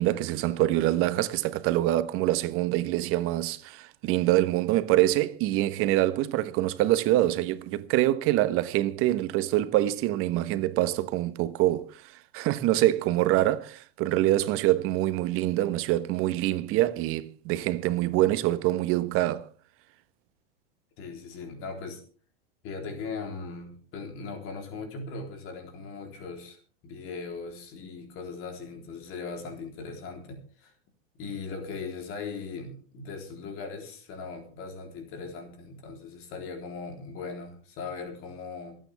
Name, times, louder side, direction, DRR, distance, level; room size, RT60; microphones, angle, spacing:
voice 1, 0.0-19.5, right 15 dB, 45° right, 1.3 m, -25 dB
voice 2, 21.0-22.0 22.6-26.6 26.8-30.7 31.2-38.7, left 4 dB, 45° left, 3.7 m, -39 dB
26.0 x 9.2 x 3.5 m
hypercardioid pair, 105°, 30 cm